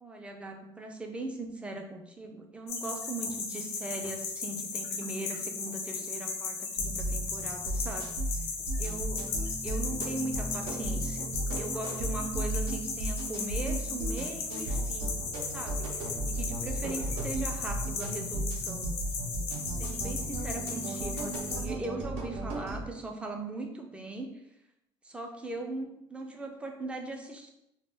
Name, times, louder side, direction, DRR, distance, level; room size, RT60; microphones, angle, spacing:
voice 1, 0.0-8.1 8.8-9.3 9.6-11.3 11.6-15.2 15.5-18.9 19.8-24.3 25.0-27.5, right 2 dB, 10° right, 2 dB, 0.3 m, -39 dB
sound 1, 2.7-21.6, left 5 dB, 85° left, 0.5 m, -37 dB
sound 2, 6.8-22.8, right 2 dB, 70° right, 0.5 m, -35 dB
2.1 x 2.1 x 3.3 m, 0.83 s
cardioid pair, 135°, 10 cm